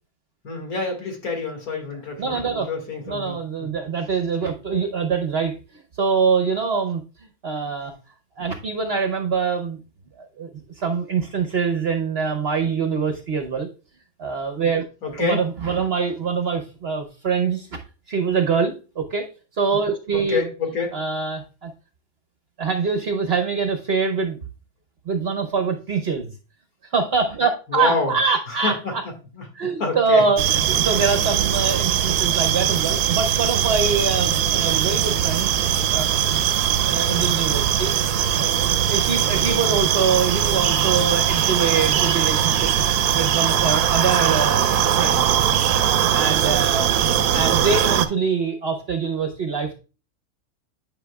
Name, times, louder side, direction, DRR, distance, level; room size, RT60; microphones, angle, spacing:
voice 1, 0.4-3.7 12.6-12.7 15.0-15.4 20.1-20.9 27.7-28.1 28.5-28.9 29.3-30.2 37.0-37.3 39.5-39.7 47.0-47.1, left 4 dB, 70° left, 2 dB, 2.4 m, -28 dB
voice 2, 2.2-2.7 3.1-7.0 7.4-7.9 8.4-9.8 10.2-13.7 14.2-14.8 15.2-17.7 18.1-19.3 19.6-20.4 20.9-21.7 22.6-24.4 25.1-26.3 26.9-29.0 29.6-35.5 35.9-36.1 36.5-37.9 38.4-38.6 38.9-42.7 43.1-45.3 45.7-46.9 47.3-49.8, right 5 dB, 50° right, 5 dB, 0.8 m, -24 dB
sound 1, 30.4-48.1, right 9 dB, 90° right, 1.1 m, -20 dB
10.0 x 5.4 x 2.2 m, 0.33 s
omnidirectional pair, 1.6 m